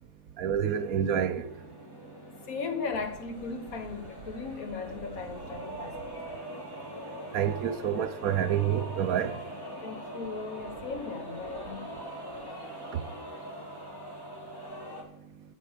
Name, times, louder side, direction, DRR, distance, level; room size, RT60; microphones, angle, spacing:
voice 1, 0.4-1.5 7.3-9.4 12.9-13.0, right 9 dB, 80° right, 1.2 m, -28 dB
sound 1, 0.8-15.0, equal, 15° left, 1.9 m, -42 dB
voice 2, 2.5-6.0 9.8-12.2, left 5 dB, 75° left, 1.7 m, -37 dB
8.4 x 8.1 x 6.0 m
omnidirectional pair, 1.5 m